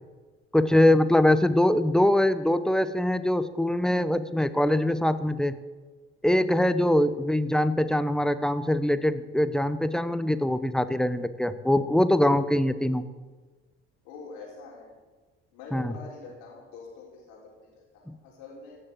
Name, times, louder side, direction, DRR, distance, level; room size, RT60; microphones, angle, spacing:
voice 1, 0.5-5.5 6.2-13.0 15.7-15.9 18.1-18.2, left 1 dB, ahead, 12 dB, 1.0 m, -23 dB
voice 2, 14.0-14.9 15.5-18.8, left 4 dB, 80° left, -2 dB, 4.7 m, -45 dB
17.5 x 6.7 x 7.7 m, 1.3 s
hypercardioid pair, 65°, 29 cm